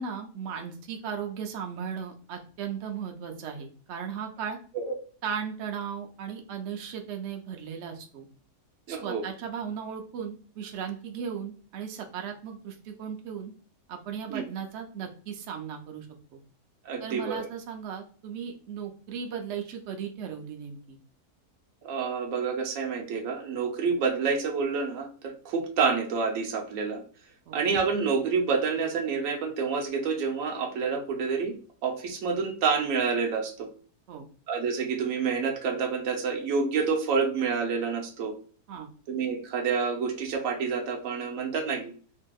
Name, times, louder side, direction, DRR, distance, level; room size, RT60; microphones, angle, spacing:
voice 1, 0.0-4.6 5.2-8.3 8.9-13.5 13.9-16.1 16.3-16.4 17.0-21.0 27.5-27.6 34.1-34.3 38.7-38.9, right 7 dB, 85° right, 3 dB, 0.6 m, -36 dB
voice 2, 8.9-9.2 14.3-14.4 16.9-17.5 21.8-27.0 27.5-33.7 34.5-38.4 39.1-41.9, right 5 dB, 65° right, 3 dB, 0.9 m, -28 dB
2.7 x 2.6 x 2.3 m, 0.41 s
omnidirectional pair, 1.7 m